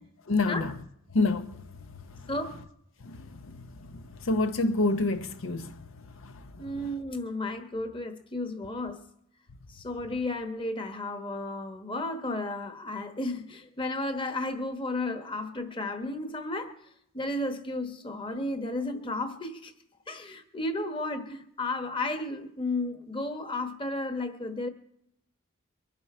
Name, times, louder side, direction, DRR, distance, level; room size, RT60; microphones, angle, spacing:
voice 1, 0.3-0.7 1.1-2.3 3.0-6.6, left 3 dB, 75° left, 0.8 m, -29 dB
voice 2, 2.3-2.6 6.6-9.0 9.7-16.8 17.1-19.7 20.1-24.7, left 2 dB, 25° left, 1.2 m, -33 dB
23.5 x 10.5 x 4.3 m
head